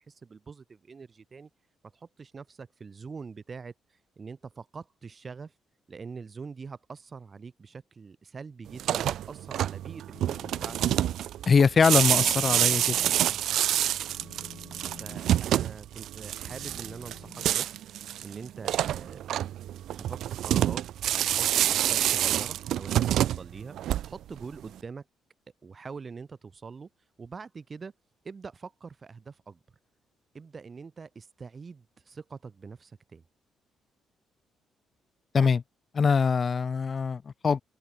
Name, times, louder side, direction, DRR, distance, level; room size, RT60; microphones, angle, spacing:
voice 1, 0.0-1.5 1.9-3.7 4.2-5.5 5.9-10.9 15.0-19.3 20.0-20.9 21.1-23.8 24.1-25.1 25.6-26.9 27.2-27.9 28.2-29.6 30.3-33.2, right 5 dB, 35° right, 7.3 m, -44 dB
sound 1, 8.7-24.4, right 12 dB, 75° right, 0.5 m, -27 dB
Telephone, 10.1-11.2 11.5-11.8 12.1-18.2, left 10 dB, 65° left, 3.7 m, -50 dB
voice 2, 11.5-13.0 13.3-13.4 35.3-35.6 35.9-37.6, left 5 dB, 40° left, 1.2 m, -23 dB
cardioid pair, 90°, 0 cm